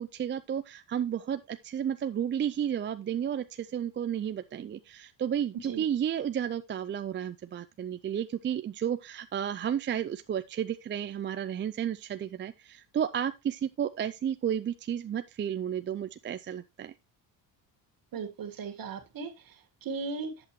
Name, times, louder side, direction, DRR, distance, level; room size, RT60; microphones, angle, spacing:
voice 1, 0.0-16.9, right 9 dB, 25° right, 0.4 m, -32 dB
voice 2, 18.1-19.6 19.8-20.3, right 4 dB, 50° right, 1.9 m, -37 dB
8.8 x 7.4 x 3.1 m
cardioid pair, 95°, 44 cm